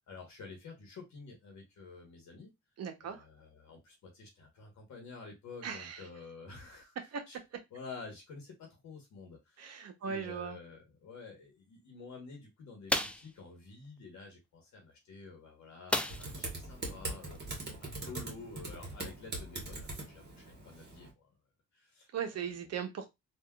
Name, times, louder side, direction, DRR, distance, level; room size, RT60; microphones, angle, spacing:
voice 1, 0.1-2.5 3.0-6.9 7.3-7.4 7.7-21.3 21.7-22.5, left 4 dB, 65° left, 1.1 m, -50 dB
voice 2, 2.8-3.2 5.6-6.0 7.0-7.4 9.6-10.6 22.1-23.1, right 7 dB, 55° right, 0.8 m, -38 dB
sound 1, 12.9-13.3 15.9-16.5 16.8-16.9 17.3-17.5, left 1 dB, 5° left, 0.3 m, -32 dB
Typing, 16.1-21.1, right 2 dB, 35° right, 1.4 m, -42 dB
3.5 x 2.5 x 2.3 m
cardioid pair, 90°, 30 cm